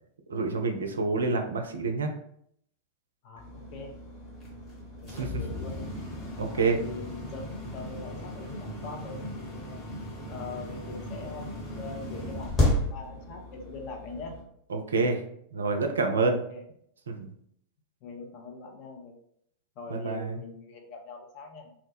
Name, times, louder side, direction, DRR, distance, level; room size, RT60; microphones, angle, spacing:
voice 1, 0.3-2.1 5.1-5.4 6.4-6.8 14.7-15.2 15.5-16.4 17.1-17.3 19.9-20.4, right 3 dB, 70° right, 5 dB, 0.3 m, -27 dB
voice 2, 3.2-4.7 5.0-5.9 6.5-9.9 10.3-14.4 16.5-16.6 18.0-19.1 19.8-21.7, left 4 dB, 40° left, 2 dB, 0.5 m, -43 dB
sound 1, 3.4-14.4, left 1 dB, 25° left, 1.1 m, -34 dB
2.3 x 2.0 x 3.3 m, 0.69 s
figure-of-eight pair, 90°, 0 cm